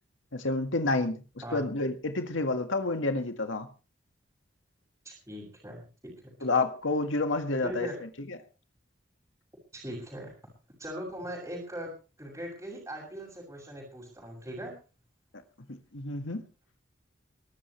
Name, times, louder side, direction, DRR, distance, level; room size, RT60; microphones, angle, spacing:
voice 1, 0.3-1.2 1.5-3.7 6.4-7.9 8.3-8.4 15.7-16.4, left 2 dB, 80° left, 6 dB, 1.9 m, -29 dB
voice 2, 5.0-6.3 7.6-8.0 9.7-10.3 10.8-11.9 12.2-14.7, equal, 15° right, -3 dB, 6.7 m, -40 dB
23.0 x 13.0 x 3.3 m, 0.34 s
head